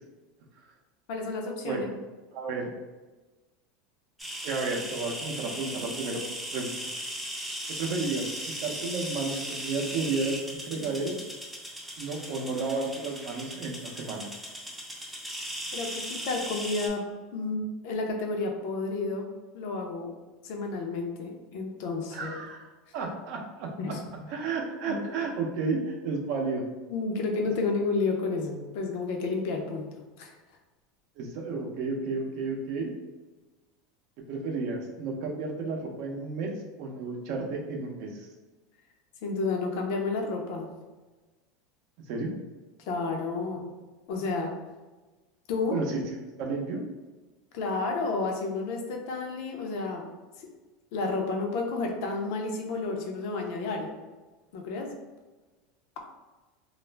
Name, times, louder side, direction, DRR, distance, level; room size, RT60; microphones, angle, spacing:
voice 1, 1.1-1.9 15.7-17.0 17.3-19.3 19.5-20.1 20.4-22.3 23.8-24.0 24.9-25.0 26.9-29.9 30.2-30.3 39.2-40.7 42.9-43.7 44.1-44.5 45.5-45.8 47.5-50.1 50.4-50.5 50.9-53.9 54.5-54.9, left 3 dB, 65° left, 1 dB, 0.6 m, -31 dB
voice 2, 2.3-2.7 4.4-6.2 6.5-6.9 7.8-11.1 12.0-14.3 22.1-22.7 22.9-23.7 24.3-26.6 31.2-32.9 34.3-36.5 36.8-38.3 42.1-42.3 45.7-46.8, right 3 dB, 55° right, 1 dB, 0.5 m, -32 dB
sound 1, 4.2-16.9, right 1 dB, 5° right, 0.5 m, -38 dB
2.4 x 2.0 x 3.2 m, 1.2 s
supercardioid pair, 150°, 0 cm